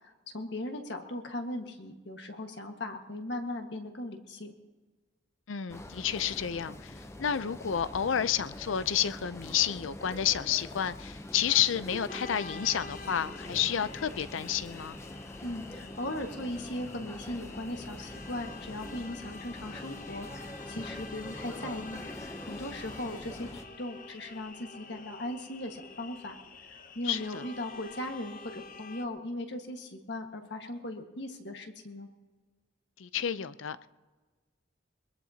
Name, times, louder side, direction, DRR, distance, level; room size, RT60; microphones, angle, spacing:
voice 1, 0.3-4.6 15.4-26.4 26.7-32.1, left 1 dB, 60° left, 4 dB, 1.7 m, -38 dB
voice 2, 5.5-6.9 7.2-15.0 27.0-27.5 33.0-33.9, left 9 dB, 85° left, 15 dB, 0.5 m, -30 dB
sound 1, 5.7-23.6, left 1 dB, 15° left, 0.7 m, -44 dB
sound 2, 12.1-29.1, left 4 dB, 45° left, 0.8 m, -48 dB
22.5 x 21.5 x 2.9 m, 1.3 s
head